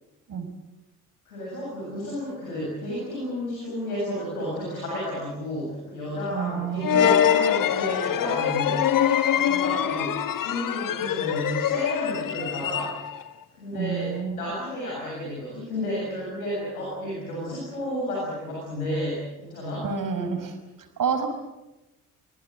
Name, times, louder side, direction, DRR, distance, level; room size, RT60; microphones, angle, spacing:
voice 1, 1.2-13.1 13.5-19.9, left 1 dB, 80° left, -5 dB, 7.9 m, -32 dB
voice 2, 6.3-7.1 13.7-14.5 19.8-20.6 21.0-21.3, right 6 dB, 50° right, 7 dB, 5.2 m, -29 dB
sound 1, 6.8-13.3, left 9 dB, 50° left, 1.5 m, -24 dB
26.5 x 23.0 x 7.9 m, 1.0 s
figure-of-eight pair, 45°, 43 cm